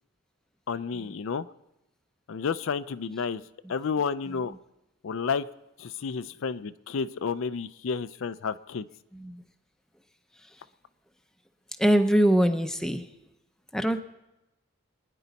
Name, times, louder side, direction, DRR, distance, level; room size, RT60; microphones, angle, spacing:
voice 1, 0.7-1.5 2.3-3.4 3.7-4.5 5.0-5.4 5.8-8.9, left 5 dB, 60° left, 13 dB, 0.4 m, -31 dB
voice 2, 9.1-9.4 11.8-13.1 13.7-14.0, equal, ahead, 6 dB, 0.6 m, -23 dB
24.0 x 9.9 x 4.1 m, 0.93 s
head